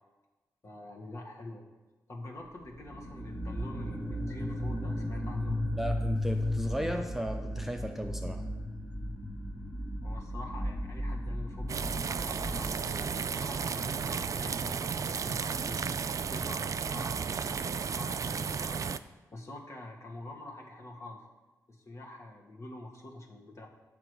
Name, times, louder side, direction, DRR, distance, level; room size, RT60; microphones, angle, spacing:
voice 1, 0.6-1.6 2.1-5.6 10.0-16.0 16.3-18.9 19.3-21.2 21.7-23.7, left 2 dB, 45° left, 0 dB, 1.6 m, -46 dB
sound 1, 2.6-13.3, left 1 dB, 20° left, 1.4 m, -35 dB
voice 2, 5.7-8.4, equal, 5° right, 4 dB, 0.6 m, -35 dB
sound 2, 11.7-19.0, right 6 dB, 50° right, 0.3 m, -33 dB
7.6 x 6.1 x 4.7 m, 1.2 s
cardioid pair, 50°, 7 cm